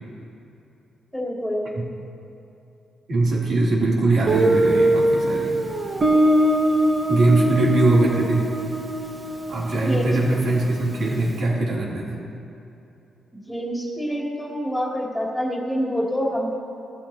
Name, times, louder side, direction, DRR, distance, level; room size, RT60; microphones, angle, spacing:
voice 1, 1.1-1.7 9.8-10.2 13.5-16.5, equal, ahead, -4 dB, 2.9 m, -26 dB
voice 2, 3.1-5.7 7.1-8.5 9.5-12.2, right 2 dB, 65° right, -4 dB, 3.3 m, -21 dB
Guitar, 4.3-10.9, right 1 dB, 30° right, 1.3 m, -22 dB
19.0 x 14.5 x 3.0 m, 2.8 s
cardioid pair, 120°, 0 cm